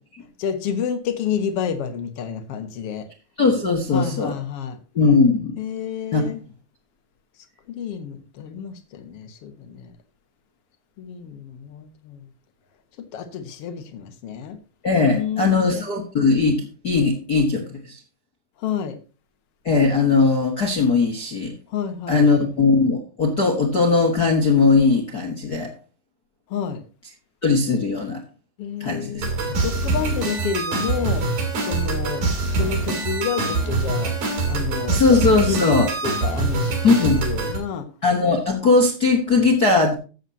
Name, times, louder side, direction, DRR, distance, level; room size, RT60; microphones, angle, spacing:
voice 1, 0.4-3.0 3.9-4.8 5.6-6.4 7.7-9.9 11.0-12.2 13.0-14.6 15.1-15.8 18.6-19.0 21.7-22.3 26.5-26.8 28.6-29.3 29.6-31.2 31.6-34.1 34.4-35.0 35.5-37.9, left 8 dB, 75° left, 1.3 m, -29 dB
voice 2, 3.4-4.3 4.9-5.5 6.1-6.3 14.8-18.0 19.6-21.5 22.1-25.7 27.4-28.2 28.8-29.6 34.9-35.9 36.8-37.3 38.0-39.9, left 4 dB, 55° left, 1.0 m, -19 dB
sound 1, 29.2-37.6, right 3 dB, 55° right, 5.4 m, -24 dB
15.0 x 7.8 x 2.8 m
omnidirectional pair, 4.7 m